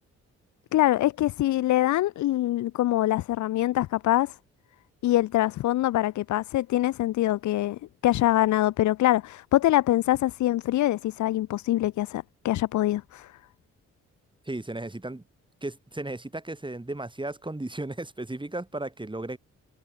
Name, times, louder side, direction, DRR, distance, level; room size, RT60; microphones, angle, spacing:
voice 1, 0.7-4.3 5.0-13.3, left 15 dB, 70° left, 0.6 m, -24 dB
voice 2, 14.4-15.2 15.6-19.4, right 2 dB, 15° right, 4.7 m, -35 dB
supercardioid pair, 55°, 30 cm